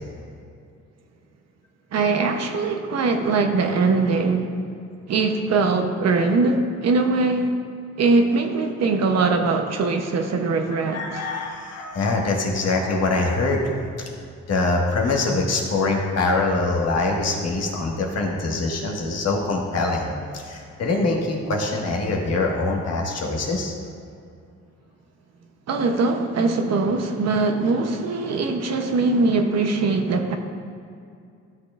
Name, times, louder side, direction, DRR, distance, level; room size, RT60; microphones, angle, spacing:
voice 1, 1.9-4.5 5.1-7.6 8.0-11.1 25.7-30.4, right 3 dB, 60° right, 5 dB, 0.9 m, -21 dB
voice 2, 10.7-13.6 14.5-20.1 20.3-23.7, left 3 dB, 55° left, -1 dB, 1.6 m, -24 dB
13.0 x 6.6 x 2.5 m, 2.4 s
cardioid pair, 90°, 30 cm